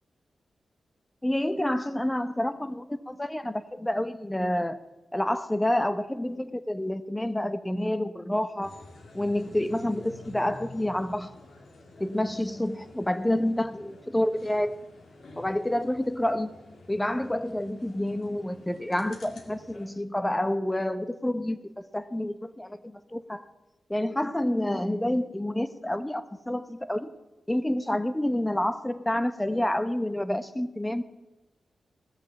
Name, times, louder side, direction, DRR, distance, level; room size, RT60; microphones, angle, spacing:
voice 1, 1.2-4.8 5.1-8.7 9.1-11.3 12.0-14.8 15.4-16.5 16.9-23.4 23.9-27.1 27.5-31.0, left 1 dB, 15° left, 12 dB, 1.0 m, -28 dB
sound 1, 8.6-19.9, left 2 dB, 75° left, 2.0 m, -49 dB
17.5 x 6.7 x 7.3 m, 1.1 s
cardioid pair, 45°, 0 cm